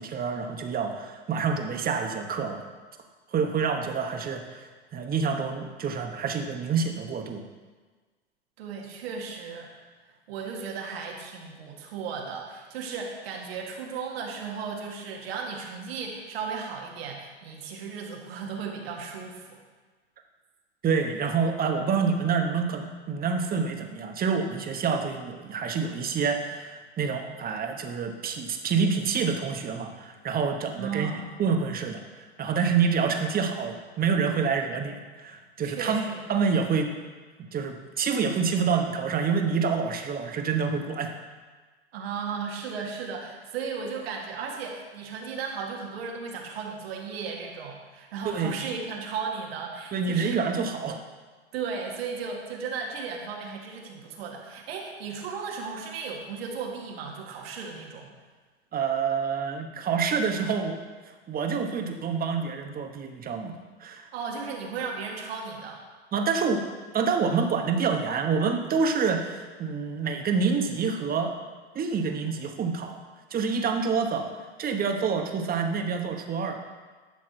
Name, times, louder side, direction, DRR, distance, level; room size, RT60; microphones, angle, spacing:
voice 1, 0.0-2.6 3.3-7.4 20.8-31.1 31.4-36.9 37.5-41.1 48.2-48.7 49.9-51.0 58.7-60.8 61.3-63.5 63.8-64.1 66.1-66.6 66.9-71.3 71.7-73.0 73.3-74.3 74.6-76.6, right 5 dB, 25° right, 5 dB, 1.2 m, -27 dB
voice 2, 8.6-9.7 10.1-19.6 30.8-31.3 35.6-36.2 41.9-50.4 51.5-58.1 64.1-65.8, right 5 dB, 65° right, 0 dB, 2.0 m, -35 dB
11.5 x 6.3 x 4.4 m, 1.4 s
hypercardioid pair, 95°, 32 cm